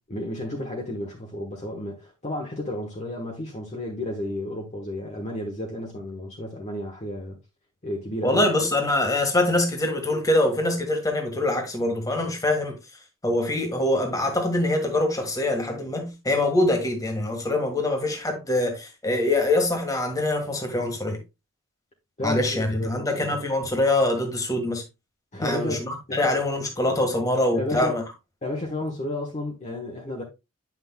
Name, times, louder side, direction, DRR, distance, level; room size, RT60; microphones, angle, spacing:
voice 1, 0.1-7.4 7.8-8.5 22.2-23.4 25.3-26.5 27.5-28.0 28.4-30.2, left 1 dB, 35° left, 1.2 m, -32 dB
voice 2, 8.2-12.7 13.2-21.2 22.2-24.8 25.4-28.0, left 1 dB, 15° left, 1.5 m, -24 dB
8.9 x 5.9 x 2.2 m
head